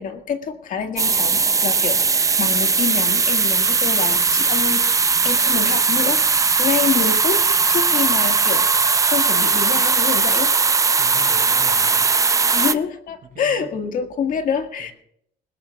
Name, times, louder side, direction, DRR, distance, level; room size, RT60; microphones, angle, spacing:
voice 1, 0.0-7.4 7.7-8.7 9.1-10.5 12.5-14.9, left 6 dB, 55° left, 6 dB, 1.8 m, -26 dB
sound 1, 1.0-12.7, right 4 dB, 20° right, 0.5 m, -18 dB
voice 2, 11.0-12.1 13.4-13.7, right 5 dB, 60° right, 3 dB, 5.4 m, -39 dB
20.5 x 17.5 x 2.4 m, 0.71 s
cardioid pair, 110°, 17 cm